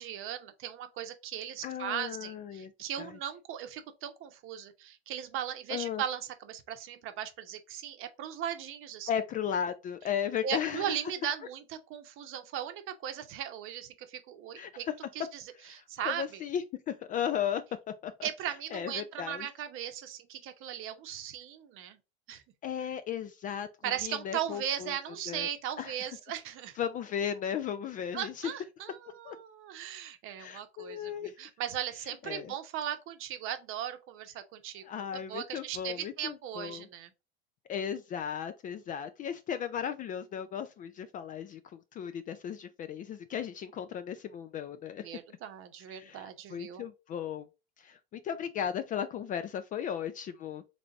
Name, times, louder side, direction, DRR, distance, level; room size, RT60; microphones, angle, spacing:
voice 1, 0.0-9.1 10.4-14.9 15.1-15.4 15.7-16.4 18.2-22.0 22.3-22.4 23.8-26.8 28.1-34.8 35.1-37.1 45.0-46.8, right 10 dB, 45° right, 0.8 m, -38 dB
voice 2, 1.6-2.7 3.0-3.1 5.7-6.0 9.1-11.0 14.6-14.7 15.7-17.6 18.0-18.3 18.7-19.5 22.6-23.7 24.0-24.9 25.3-25.5 25.8-25.9 26.8-28.5 29.2-29.4 30.4-31.3 32.3-32.5 34.8-36.9 37.7-45.1 45.9-47.5 47.8-50.6, left 8 dB, 30° left, 0.4 m, -35 dB
3.8 x 3.4 x 3.8 m
hypercardioid pair, 110°, 30 cm